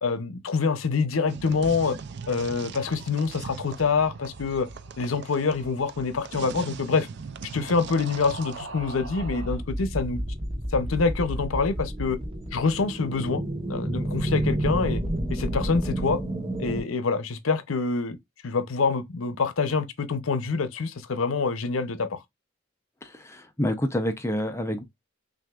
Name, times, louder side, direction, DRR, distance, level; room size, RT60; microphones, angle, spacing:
voice 1, 0.0-2.0 2.3-4.7 5.0-7.1 7.5-10.2 10.7-12.2 12.5-15.0 15.3-16.2 16.6-18.2 18.4-22.2, left 4 dB, 85° left, 0.7 m, -26 dB
sound 1, 1.3-8.6, right 5 dB, 55° right, 0.4 m, -40 dB
sound 2, 3.0-9.6, right 2 dB, 75° right, 1.2 m, -45 dB
sound 3, 8.7-16.8, right 1 dB, 25° right, 1.0 m, -30 dB
voice 2, 23.0-24.8, equal, 15° left, 0.6 m, -28 dB
6.2 x 2.6 x 2.3 m
head